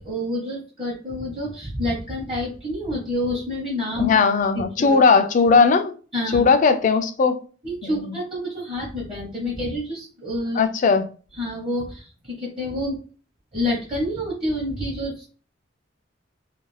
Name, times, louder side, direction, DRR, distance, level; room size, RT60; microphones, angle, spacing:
voice 1, 0.0-4.1 4.5-5.0 6.1-6.5 7.6-10.6 11.4-12.1 12.4-13.0 13.5-15.2, left 1 dB, 25° right, 0.8 m, -28 dB
voice 2, 4.0-5.9 6.3-7.4 7.8-8.2 10.5-11.0, left 4 dB, 40° left, 0.3 m, -18 dB
2.4 x 2.2 x 3.1 m
head